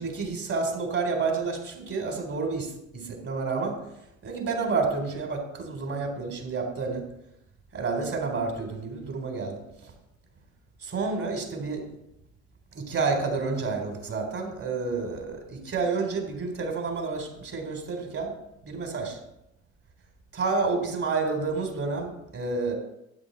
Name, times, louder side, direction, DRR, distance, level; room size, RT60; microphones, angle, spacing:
voice 1, 0.0-3.8 4.2-7.0 7.7-9.9 10.8-11.8 12.7-18.3 18.6-19.2 20.3-22.7, right 4 dB, 40° right, 3 dB, 3.9 m, -29 dB
12.5 x 8.7 x 4.2 m, 0.82 s
hypercardioid pair, 55°, 36 cm